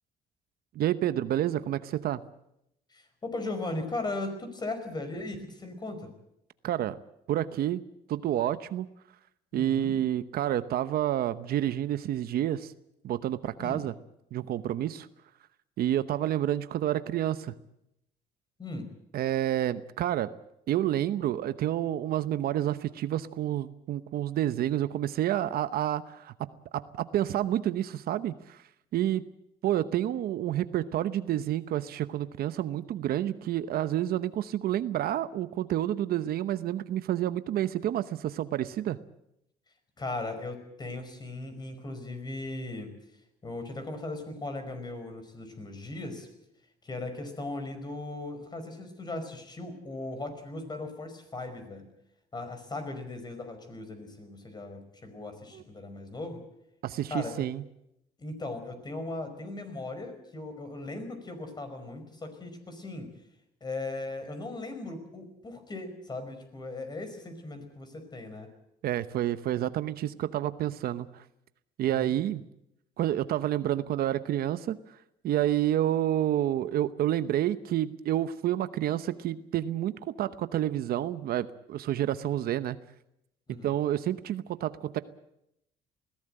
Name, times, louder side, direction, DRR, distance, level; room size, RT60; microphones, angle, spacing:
voice 1, 0.7-2.2 6.6-7.0 7.3-7.8 8.1-8.9 9.5-12.7 13.0-13.9 14.3-15.1 15.8-17.5 19.1-20.3 20.7-28.6 28.9-29.2 29.6-39.0 55.5-55.6 56.8-57.6 68.8-71.2 71.8-72.4 73.0-74.8 75.2-82.8 83.5-85.0, right 12 dB, 65° right, 13 dB, 0.9 m, -29 dB
voice 2, 2.9-6.1 9.5-10.0 13.6-13.8 18.6-18.9 40.0-42.9 43.4-46.3 46.8-51.9 52.3-56.4 57.1-57.5 58.2-63.1 63.6-68.5 71.8-72.1 83.5-83.7, left 2 dB, 25° left, 8 dB, 5.1 m, -38 dB
21.0 x 16.5 x 8.9 m, 0.80 s
cardioid pair, 110°, 17 cm